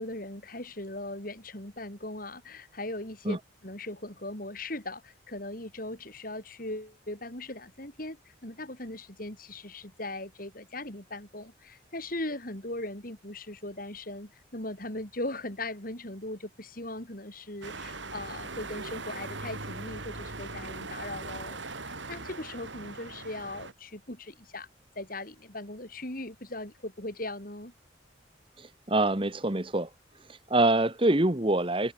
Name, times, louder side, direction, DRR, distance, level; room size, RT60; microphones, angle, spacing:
voice 1, 0.0-3.4 3.6-8.2 8.4-21.6 21.8-24.7 24.9-27.7, left 2 dB, 45° left, 4.4 m, -39 dB
sound 1, 17.6-23.7, right 3 dB, 75° right, 5.4 m, -40 dB
voice 2, 28.6-29.9 30.3-31.9, right 2 dB, 25° right, 1.3 m, -25 dB
head